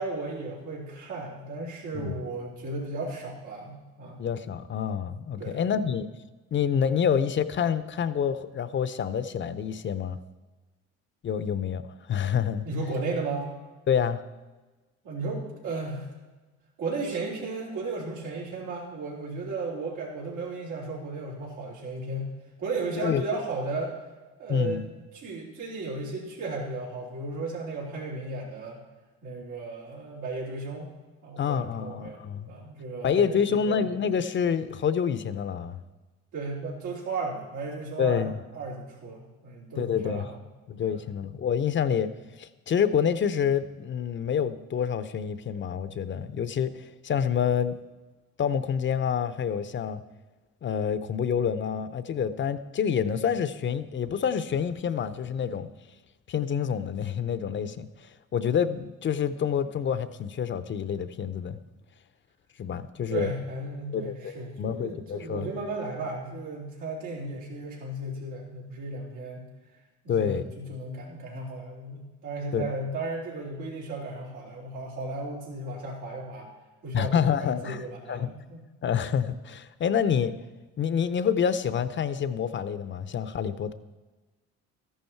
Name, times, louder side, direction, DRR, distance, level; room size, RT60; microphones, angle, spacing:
voice 1, 0.0-4.2 5.4-5.7 12.6-13.5 15.0-16.1 16.8-22.3 22.6-24.0 24.4-24.8 25.1-28.8 29.2-30.9 31.2-33.8 36.3-38.3 38.5-40.4 40.9-41.1 63.1-69.5 70.0-76.5 76.8-78.6, right 2 dB, 90° right, -5 dB, 4.4 m, -35 dB
voice 2, 4.2-6.1 6.5-10.2 11.2-11.8 12.1-12.7 13.9-14.2 23.0-23.2 24.5-24.8 31.4-32.5 33.0-35.8 38.0-38.3 39.8-40.3 40.7-42.1 42.4-47.7 48.4-50.0 50.6-55.7 56.3-57.9 58.3-61.6 62.6-63.3 63.9-65.5 70.1-70.4 72.5-72.6 76.9-78.3 78.8-80.3 80.8-83.7, left 7 dB, 40° left, 13 dB, 0.7 m, -27 dB
13.5 x 11.0 x 4.5 m, 1.2 s
cardioid pair, 100°, 30 cm